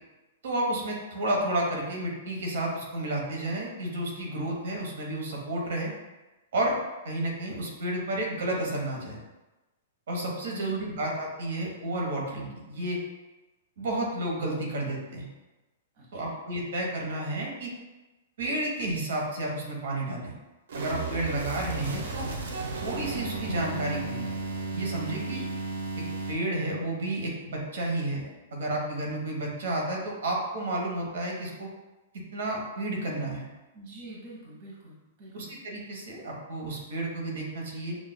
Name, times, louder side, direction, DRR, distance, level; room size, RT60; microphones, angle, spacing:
voice 1, 0.4-5.9 6.5-6.8 7.0-9.2 10.1-13.0 13.8-15.3 16.1-17.7 18.4-20.3 20.7-22.3 22.7-24.3 24.7-25.4 26.3-31.7 32.3-33.5 35.3-38.0, right 1 dB, 70° right, -1 dB, 1.0 m, -31 dB
voice 2, 10.6-10.9 15.9-16.4 25.1-25.4 33.7-35.5, right 1 dB, 35° right, -5 dB, 0.8 m, -47 dB
sound 1, 20.7-26.3, right 3 dB, 85° right, 0.6 m, -34 dB
6.1 x 2.3 x 2.2 m, 1.1 s
hypercardioid pair, 175°, 0 cm